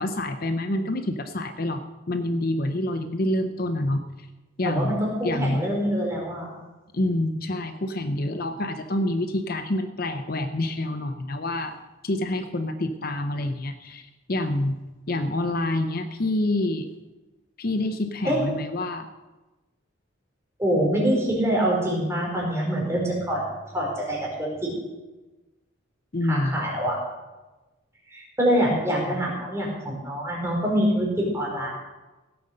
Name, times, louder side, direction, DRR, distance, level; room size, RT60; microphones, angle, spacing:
voice 1, 0.0-4.3 4.6-5.6 6.9-11.7 12.0-14.8 15.1-16.9 17.6-19.1 26.1-26.6 28.7-28.8 29.1-29.2, left 1 dB, 50° left, 8 dB, 0.7 m, -27 dB
voice 2, 4.6-6.5 18.2-18.4 20.6-23.4 23.7-24.7 26.3-27.0 28.1-31.7, equal, 15° right, -3 dB, 4.5 m, -25 dB
17.0 x 8.0 x 6.5 m, 1.1 s
head